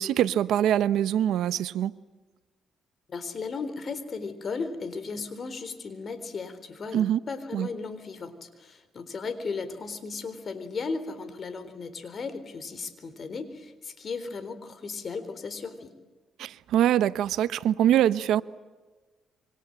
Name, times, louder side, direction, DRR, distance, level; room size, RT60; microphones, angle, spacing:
voice 1, 0.0-1.9 6.9-7.2 7.5-7.7 16.4-18.4, right 11 dB, 80° right, 0.9 m, -24 dB
voice 2, 3.1-15.9, left 4 dB, 45° left, 4.0 m, -36 dB
27.0 x 25.0 x 8.9 m
cardioid pair, 90°, 0 cm